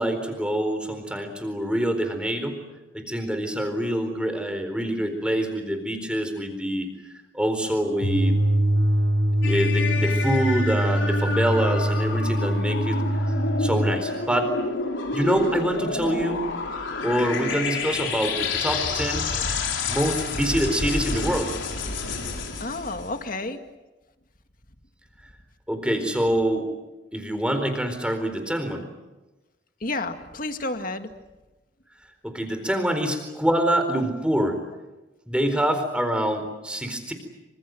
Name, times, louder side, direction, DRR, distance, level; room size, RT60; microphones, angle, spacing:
voice 1, 0.0-2.6 2.9-6.9 7.3-8.4 9.4-13.0 13.6-14.5 15.1-16.4 17.0-19.3 19.9-21.5 25.7-26.7 27.1-28.9 32.2-34.6 35.3-37.1, equal, 5° right, 7 dB, 4.2 m, -25 dB
sound 1, 8.0-14.0, equal, 80° right, 2.9 m, -23 dB
sound 2, 9.4-23.2, left 3 dB, 85° left, 4.5 m, -29 dB
voice 2, 22.6-23.6 29.8-31.1, left 2 dB, 45° left, 7 dB, 2.0 m, -30 dB
27.0 x 26.0 x 7.9 m, 1.1 s
head